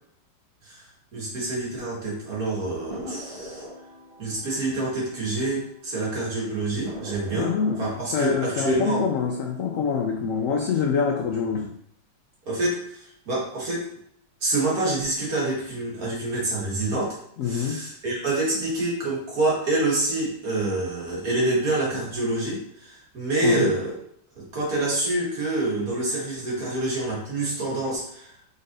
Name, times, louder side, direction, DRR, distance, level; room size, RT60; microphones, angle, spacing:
voice 1, 1.1-3.6 4.2-7.5 7.8-9.1 12.5-13.9 14.4-17.2 17.4-23.9 24.4-28.3, right 2 dB, 55° right, -4 dB, 2.0 m, -27 dB
sound 1, 2.9-5.9 6.2-6.3 6.8-9.8 10.2-10.8, equal, 35° right, 0.5 m, -43 dB
voice 2, 7.3-7.8 8.1-11.7 17.4-17.8 23.4-23.7, left 6 dB, 85° left, 1 dB, 0.7 m, -25 dB
5.2 x 3.9 x 2.6 m, 0.70 s
omnidirectional pair, 2.0 m